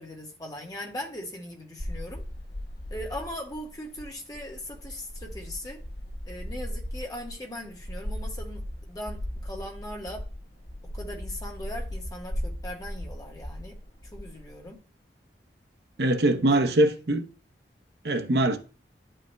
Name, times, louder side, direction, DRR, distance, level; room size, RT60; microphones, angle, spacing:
voice 1, 0.0-2.2 2.9-5.8 6.3-8.6 8.9-10.2 10.9-13.7 14.1-14.8 16.5-16.6, left 1 dB, 20° left, 1.3 m, -39 dB
sound 1, 1.8-14.7, equal, 65° left, 2.2 m, -37 dB
voice 2, 16.0-17.3 18.0-18.6, right 1 dB, 70° right, 0.8 m, -22 dB
10.0 x 5.5 x 2.3 m
head